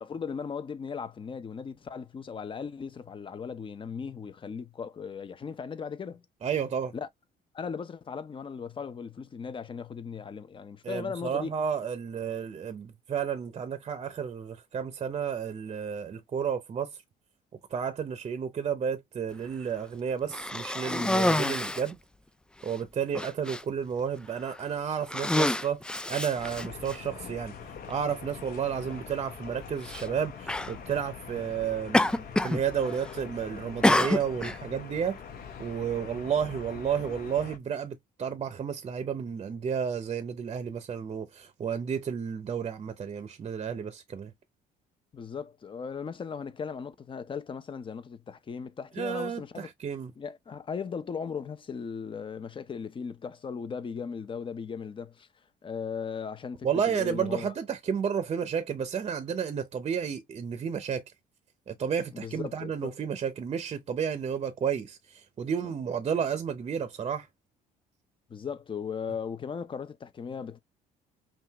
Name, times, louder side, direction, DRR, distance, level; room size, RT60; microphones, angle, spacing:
voice 1, 0.0-6.2 6.9-7.1 7.5-11.5 45.1-49.7 50.2-55.3 55.6-57.5 62.1-63.0 65.6-65.7 68.3-70.6, left 6 dB, 30° left, 0.8 m, -37 dB
voice 2, 6.4-6.9 10.8-17.0 17.7-22.0 22.6-25.8 26.1-27.5 27.9-32.0 32.4-35.2 35.6-44.3 48.9-50.1 56.6-61.0 61.7-67.3, right 7 dB, 35° right, 0.7 m, -32 dB
Cough, 20.3-21.9 22.7-22.8 23.1-23.6 24.4-24.6 25.0-27.0 27.9-28.0 29.8-30.1 30.5-30.7 31.9-32.6 32.9-33.3 33.8-34.6, left 1 dB, 5° left, 0.4 m, -27 dB
sound 1, 26.4-37.6, left 7 dB, 65° left, 1.1 m, -43 dB
5.6 x 2.4 x 2.9 m
cardioid pair, 110°, 17 cm